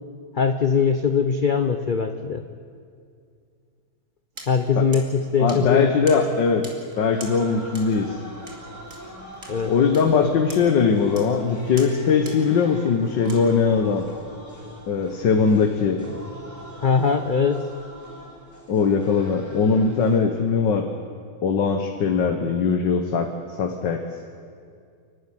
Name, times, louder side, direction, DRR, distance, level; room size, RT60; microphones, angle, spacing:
voice 1, 0.3-2.5 4.5-5.9 9.5-9.7 16.8-17.6, left 5 dB, 45° left, 8 dB, 0.6 m, -21 dB
sound 1, 4.3-13.4, right 2 dB, 45° right, 3.1 m, -45 dB
voice 2, 5.4-6.7 7.0-8.2 9.7-14.1 14.9-16.0 18.7-20.9 21.4-23.3 23.6-24.0, left 5 dB, 75° left, 5 dB, 1.9 m, -20 dB
sound 2, 7.1-20.2, equal, 10° right, 3.8 m, -42 dB
29.0 x 12.0 x 9.9 m, 2.3 s
omnidirectional pair, 2.0 m